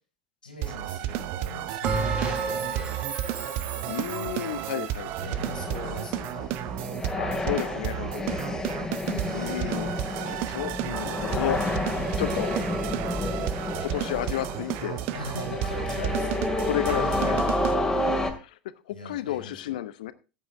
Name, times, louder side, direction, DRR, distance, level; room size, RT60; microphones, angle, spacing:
voice 1, 0.4-2.9 5.2-6.4 6.8-7.1 9.0-9.6 15.1-16.6 18.9-19.7, left 1 dB, 85° left, 4 dB, 4.7 m, -40 dB
sound 1, 0.6-17.8, right 13 dB, 50° right, 0.8 m, -32 dB
Bell, 1.8-4.6, right 4 dB, 30° right, 4.1 m, -31 dB
voice 2, 3.9-5.1 7.0-8.4 9.3-9.9 10.2-11.6 12.2-12.5 13.8-15.0 16.1-16.3 16.6-17.4 18.0-18.6 18.9-20.1, left 13 dB, 65° left, 15 dB, 0.8 m, -32 dB
sound 2, 5.2-18.3, left 1 dB, 10° left, 2.3 m, -30 dB
13.5 x 8.9 x 3.4 m, 0.31 s
figure-of-eight pair, 75°, 5 cm